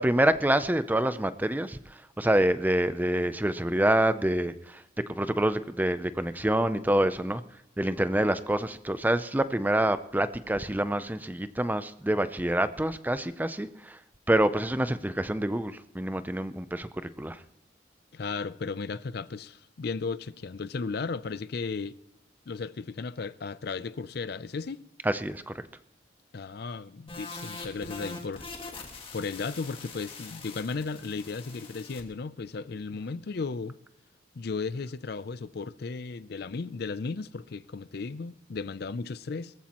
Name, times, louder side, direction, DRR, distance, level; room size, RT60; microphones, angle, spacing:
voice 1, 0.0-4.8 5.1-7.4 7.8-14.0 14.3-17.4 25.0-25.6, right 1 dB, 10° right, 0.5 m, -27 dB
voice 2, 18.1-21.9 22.5-24.8 26.3-28.4 29.1-33.7 34.3-39.5, left 4 dB, 55° left, 0.5 m, -35 dB
sound 1, 27.1-32.0, left 3 dB, 30° left, 1.8 m, -43 dB
21.5 x 14.5 x 3.0 m
head